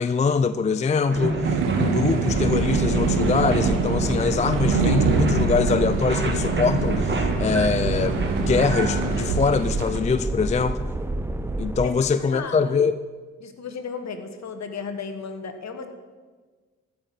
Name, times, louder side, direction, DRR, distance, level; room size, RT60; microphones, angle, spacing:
voice 1, 0.0-1.4 1.8-10.9 11.6-12.9, left 5 dB, 20° left, 12 dB, 0.4 m, -23 dB
sound 1, 1.1-9.4, right 2 dB, 35° right, 1.8 m, -29 dB
sound 2, 1.4-10.0, right 5 dB, 80° right, 1.1 m, -25 dB
sound 3, 2.3-11.9, right 2 dB, 5° right, 0.7 m, -29 dB
voice 2, 11.8-12.7 13.4-15.9, left 5 dB, 55° left, 7 dB, 1.5 m, -34 dB
14.5 x 6.1 x 5.4 m, 1.4 s
supercardioid pair, 50°, 33 cm